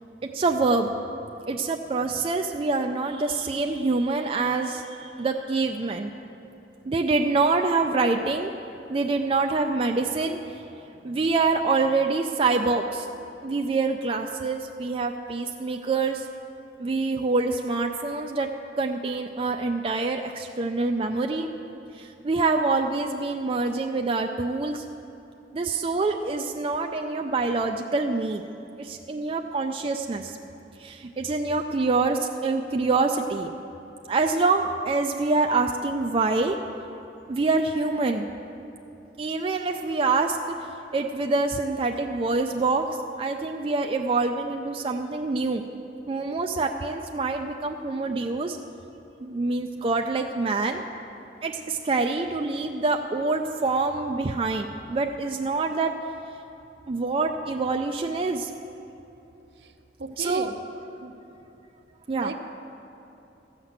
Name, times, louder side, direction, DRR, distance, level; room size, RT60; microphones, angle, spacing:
voice 1, 0.3-0.9 1.5-6.1 6.9-8.5 8.9-10.4 11.0-13.1 13.4-16.2 16.8-18.5 18.8-21.5 22.0-24.8 25.5-28.4 28.8-30.4 30.8-33.5 34.1-36.6 37.3-38.3 39.2-40.7 40.9-45.7 46.1-48.6 49.2-50.8 51.4-55.9 56.9-58.5 60.2-60.5 62.1-62.3, right 3 dB, 30° right, 4 dB, 0.4 m, -26 dB
voice 2, 60.0-60.6 61.0-61.1 62.2-62.3, right 3 dB, 65° right, 7 dB, 0.7 m, -34 dB
14.0 x 5.9 x 8.0 m, 2.9 s
head